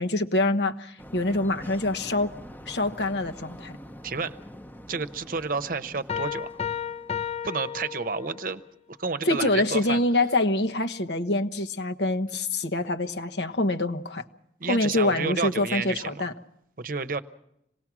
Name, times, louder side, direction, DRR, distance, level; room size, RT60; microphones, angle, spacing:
voice 1, 0.0-2.3 2.7-3.8 9.2-14.2 14.6-16.3, left 2 dB, 75° left, 6 dB, 1.2 m, -25 dB
sound 1, 1.0-7.5, equal, 10° left, 0.9 m, -45 dB
voice 2, 4.0-4.4 4.9-6.5 7.4-8.6 8.9-10.0 14.6-16.2 16.8-17.2, right 4 dB, 50° right, 11 dB, 0.9 m, -30 dB
sound 2, 6.1-8.6, left 8 dB, 35° left, 0.7 m, -33 dB
26.5 x 18.5 x 6.0 m, 0.79 s
head